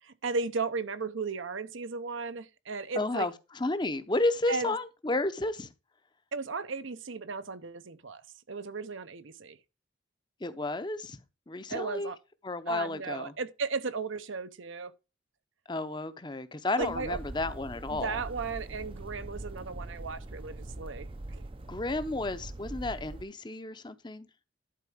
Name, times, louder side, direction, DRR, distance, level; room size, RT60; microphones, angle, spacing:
voice 1, 0.0-3.3 4.5-4.7 6.3-9.6 11.7-12.2 12.7-14.9 16.8-17.2 17.9-21.5, right 4 dB, 75° right, 0.8 m, -35 dB
voice 2, 3.0-5.7 10.4-11.2 11.5-12.1 12.4-13.3 15.7-18.2 21.7-24.3, left 2 dB, 20° left, 0.6 m, -32 dB
sound 1, 16.8-23.2, right 2 dB, 25° right, 0.5 m, -42 dB
11.5 x 4.4 x 5.0 m
head